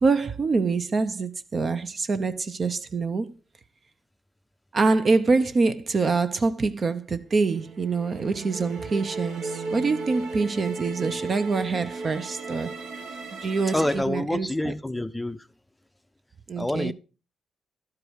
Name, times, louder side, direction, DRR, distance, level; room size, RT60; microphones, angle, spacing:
voice 1, 0.0-3.3 4.7-12.7 13.3-14.7 16.5-16.9, right 4 dB, 45° right, 0.7 m, -25 dB
sound 1, 7.4-14.0, right 3 dB, 75° right, 1.8 m, -35 dB
voice 2, 13.7-15.4 16.6-16.9, left 1 dB, 10° left, 0.5 m, -27 dB
11.5 x 4.8 x 4.6 m
supercardioid pair, 70°, 0 cm